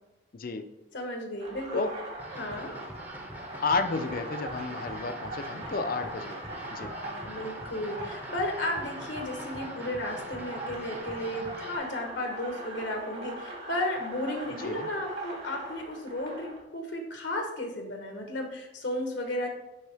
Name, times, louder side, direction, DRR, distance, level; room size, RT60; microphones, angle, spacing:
voice 1, 0.3-0.7 1.7-1.9 3.6-6.9 14.6-14.9, left 4 dB, 50° left, 9 dB, 0.5 m, -32 dB
voice 2, 0.9-1.8 2.3-2.8 6.8-19.5, left 1 dB, 80° left, 3 dB, 1.1 m, -34 dB
sound 1, 1.4-16.6, right 2 dB, 65° right, 2.3 m, -40 dB
sound 2, 2.2-11.8, equal, 10° right, 0.6 m, -45 dB
9.9 x 3.7 x 3.4 m, 0.94 s
head